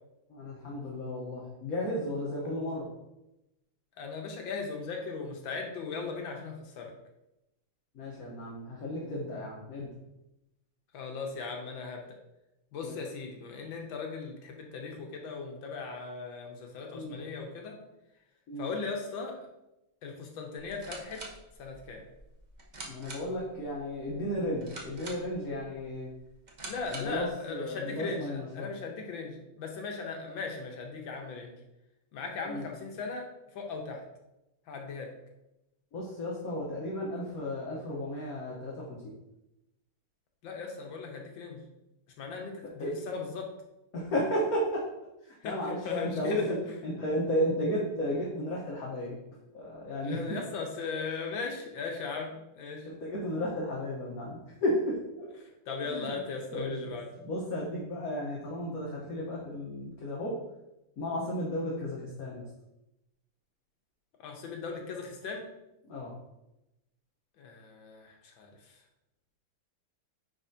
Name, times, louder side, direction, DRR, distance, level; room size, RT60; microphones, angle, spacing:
voice 1, 0.3-2.9 7.9-9.9 12.8-12.9 16.9-17.2 18.5-18.7 22.9-26.1 26.8-28.7 32.5-32.6 35.9-39.0 42.8-43.0 43.9-44.8 45.2-46.6 46.8-49.2 49.5-50.2 52.8-55.3 55.8-56.2 56.5-56.9 57.2-60.3 61.0-62.4 65.9-66.1, equal, 50° left, -4 dB, 1.3 m, -33 dB
voice 2, 4.0-6.9 10.9-12.1 12.7-17.8 18.6-19.3 20.0-21.2 21.6-22.0 26.7-31.6 32.1-33.3 33.5-34.0 34.7-35.1 40.4-41.6 42.2-43.5 45.4-46.5 47.1-47.2 50.0-52.9 55.7-57.0 64.2-65.5 67.4-68.8, left 4 dB, 65° left, 2 dB, 1.6 m, -38 dB
sound 1, 20.6-27.3, right 2 dB, 60° right, 0.4 m, -47 dB
9.4 x 4.2 x 2.8 m, 0.93 s
omnidirectional pair, 2.4 m